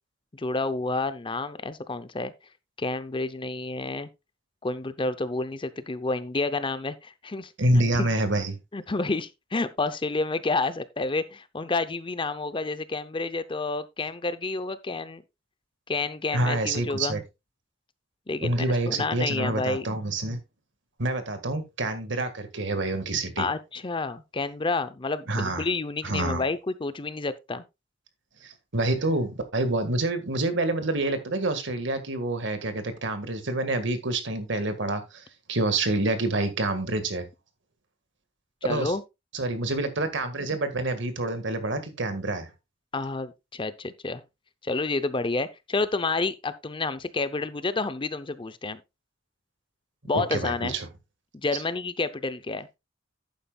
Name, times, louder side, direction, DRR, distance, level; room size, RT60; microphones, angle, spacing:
voice 1, 0.3-2.3 2.8-4.1 4.6-7.5 7.9-8.1 8.7-15.2 15.9-17.1 18.3-19.8 23.4-27.6 38.6-39.0 42.9-44.2 44.6-48.8 50.0-50.8 51.3-52.7, left 3 dB, 25° left, 0.6 m, -29 dB
voice 2, 7.6-8.6 16.3-17.2 18.4-20.4 21.0-23.5 25.3-25.6 26.0-26.4 28.4-35.2 35.5-37.3 38.7-38.9 39.3-42.5 50.1-50.9 51.5-51.6, right 2 dB, 70° right, 1.8 m, -27 dB
11.5 x 9.1 x 2.3 m
head